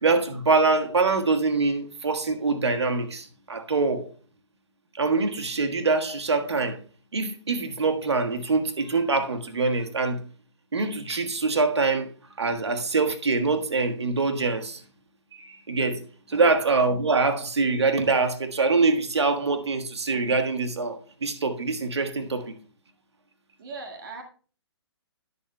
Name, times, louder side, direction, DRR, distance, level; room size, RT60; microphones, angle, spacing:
voice 1, 0.0-4.1 4.9-6.8 7.1-10.2 10.7-14.8 15.3-16.0 16.3-22.5, right 3 dB, 70° right, 1.4 m, -24 dB
voice 2, 23.6-24.2, right 3 dB, 50° right, 1.8 m, -39 dB
19.5 x 7.1 x 2.2 m
figure-of-eight pair, 130°, 15 cm